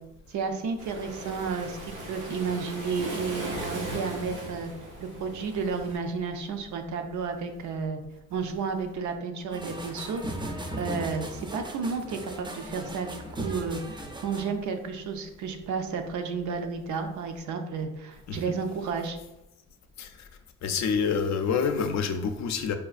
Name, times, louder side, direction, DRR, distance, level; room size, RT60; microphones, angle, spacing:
voice 1, 0.3-4.7 5.0-8.0 8.3-10.2 10.8-19.2, right 5 dB, 70° right, 5 dB, 0.5 m, -32 dB
Waves surf, 0.8-6.0, right 1 dB, 90° right, 1.1 m, -38 dB
sound 1, 9.5-14.5, right 1 dB, 15° right, 0.4 m, -37 dB
voice 2, 20.6-22.7, left 6 dB, 65° left, 8 dB, 0.5 m, -27 dB
4.8 x 2.3 x 2.4 m, 0.92 s
cardioid pair, 90°, 30 cm